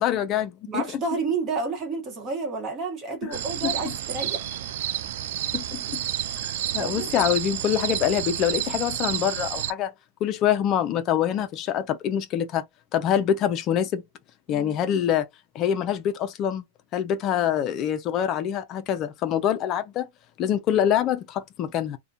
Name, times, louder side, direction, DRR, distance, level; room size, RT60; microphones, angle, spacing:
voice 1, 0.0-0.8 3.2-3.4 3.6-3.9 5.5-6.0 6.7-9.9 10.2-12.6 12.9-14.0 14.5-15.3 15.5-16.6 16.9-20.1 20.4-22.0, left 10 dB, 35° left, 0.4 m, -25 dB
voice 2, 0.7-4.6 6.8-7.1 14.5-14.8, right 4 dB, 30° right, 1.0 m, -30 dB
sound 1, 3.3-9.7, right 12 dB, 70° right, 0.3 m, -30 dB
2.3 x 2.1 x 2.7 m
hypercardioid pair, 130°, 0 cm